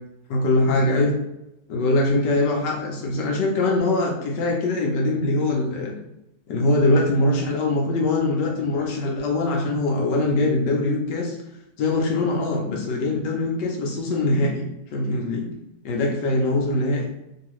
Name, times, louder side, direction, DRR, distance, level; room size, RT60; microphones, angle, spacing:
voice 1, 0.3-1.1 1.7-5.9 6.5-11.4 11.8-14.6 14.9-15.5 15.8-17.1, left 2 dB, 80° left, 0 dB, 1.3 m, -22 dB
3.0 x 2.8 x 2.9 m, 0.86 s
omnidirectional pair, 1.9 m